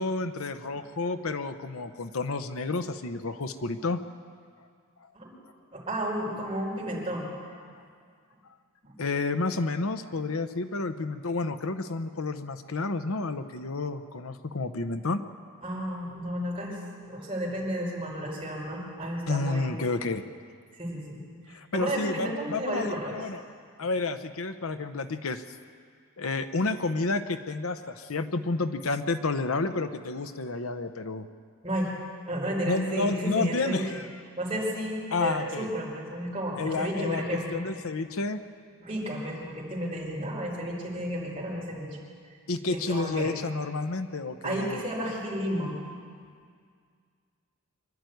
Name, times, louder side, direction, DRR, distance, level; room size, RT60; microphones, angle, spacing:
voice 1, 0.0-4.0 9.0-15.2 19.3-20.2 21.5-23.4 23.8-25.4 26.2-31.3 32.6-34.1 35.1-35.7 36.6-38.4 42.5-44.8, left 3 dB, 80° left, 10 dB, 0.9 m, -30 dB
voice 2, 5.7-7.3 8.8-8.9 15.6-19.7 20.8-21.2 21.5-23.1 31.6-31.9 32.3-33.8 34.4-37.6 38.8-41.9 42.7-43.3 44.4-45.7, equal, 25° right, -4 dB, 5.5 m, -32 dB
25.0 x 12.0 x 9.3 m, 2.1 s
head